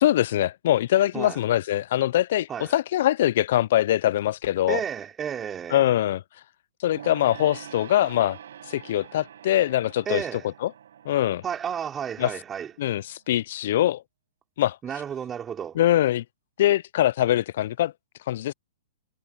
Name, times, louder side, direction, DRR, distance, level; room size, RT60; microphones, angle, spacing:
voice 1, 0.0-4.8 5.7-6.2 6.8-8.4 8.7-10.2 10.6-10.7 11.1-11.4 12.2-12.3 12.8-14.0 14.6-14.8 15.8-16.2 16.6-17.9 18.3-18.5, left 13 dB, 60° left, 0.5 m, -23 dB
voice 2, 4.7-5.9 10.1-10.5 11.4-12.7 14.8-15.8, right 8 dB, 20° right, 3.9 m, -32 dB
Gong, 6.9-12.8 13.1-13.2, right 9 dB, 70° right, 6.5 m, -45 dB
hypercardioid pair, 120°, 0 cm